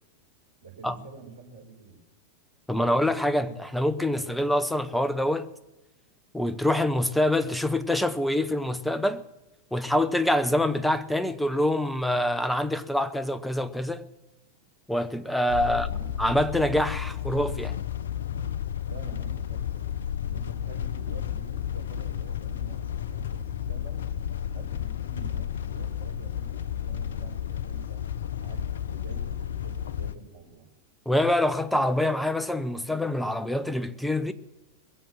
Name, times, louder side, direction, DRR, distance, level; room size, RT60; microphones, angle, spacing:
voice 1, 0.6-2.0 2.8-4.6 15.5-16.0 18.9-19.9 20.2-24.0 24.5-28.1 28.3-30.7, right 5 dB, 70° right, 5.6 m, -48 dB
voice 2, 2.7-5.5 6.3-9.2 9.7-14.1 14.9-15.9 16.2-17.8 31.1-34.3, left 1 dB, 5° left, 0.8 m, -25 dB
sound 1, 15.5-30.1, left 9 dB, 65° left, 0.6 m, -32 dB
21.5 x 7.7 x 7.4 m
figure-of-eight pair, 90°, 0 cm